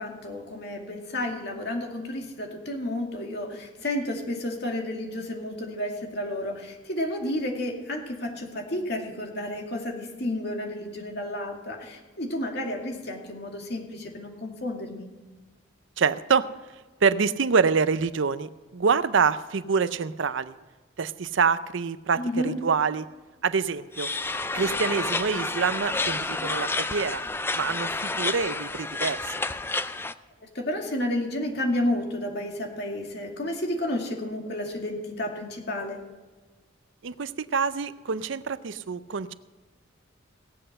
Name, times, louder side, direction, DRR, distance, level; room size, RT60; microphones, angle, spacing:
voice 1, 0.0-15.1 22.2-22.5 30.4-36.0, left 1 dB, 55° left, 1 dB, 2.4 m, -31 dB
voice 2, 16.0-16.5 17.0-20.5 21.0-23.1 23.4-24.1 24.5-27.2 27.6-29.3 37.0-39.3, right 5 dB, 70° right, 14 dB, 0.5 m, -26 dB
sound 1, 23.9-30.1, left 3 dB, 10° left, 0.3 m, -30 dB
18.0 x 7.8 x 6.6 m, 1.3 s
head